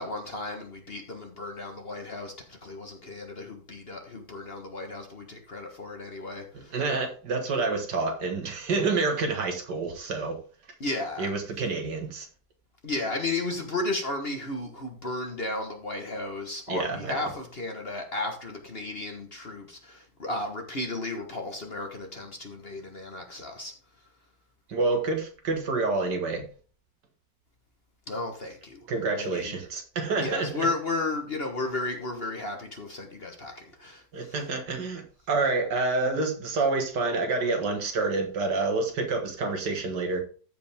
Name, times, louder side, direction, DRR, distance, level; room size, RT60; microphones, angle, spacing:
voice 1, 0.0-6.8 10.8-11.3 12.8-23.7 28.1-28.8 29.2-29.5 30.2-34.3, left 2 dB, 35° left, 4 dB, 1.4 m, -34 dB
voice 2, 6.5-10.4 11.2-12.3 16.7-17.3 24.7-26.4 28.9-30.7 34.1-40.2, right 3 dB, 65° right, 4 dB, 2.1 m, -28 dB
14.0 x 5.2 x 3.5 m, 0.40 s
omnidirectional pair, 2.0 m